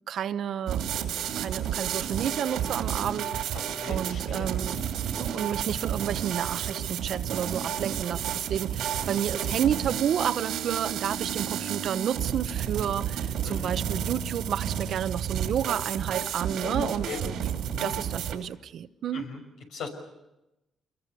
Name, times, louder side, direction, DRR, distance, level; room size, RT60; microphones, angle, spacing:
voice 1, 0.1-0.9 1.4-3.5 3.9-4.8 5.2-17.3 17.8-19.2, right 9 dB, 65° right, 0.9 m, -31 dB
sound 1, 0.7-18.4, right 9 dB, 85° right, 2.5 m, -31 dB
voice 2, 3.5-4.8 13.4-13.7 16.6-17.2 17.7-17.9 19.1-19.4 19.7-19.9, left 4 dB, 80° left, 5.8 m, -38 dB
27.0 x 22.0 x 6.8 m
cardioid pair, 90°, 0 cm